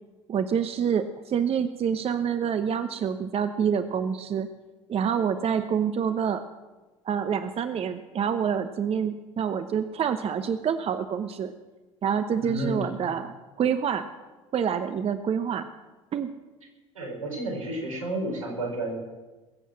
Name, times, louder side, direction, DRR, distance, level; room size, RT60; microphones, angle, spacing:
voice 1, 0.3-4.5 4.9-6.4 7.0-11.5 12.0-14.1 14.5-15.7 16.1-16.3, right 7 dB, 35° right, 9 dB, 1.0 m, -27 dB
voice 2, 12.4-13.0 16.9-18.9, right 1 dB, 90° right, -2 dB, 4.9 m, -31 dB
21.0 x 8.4 x 7.6 m, 1.2 s
figure-of-eight pair, 65°, 17 cm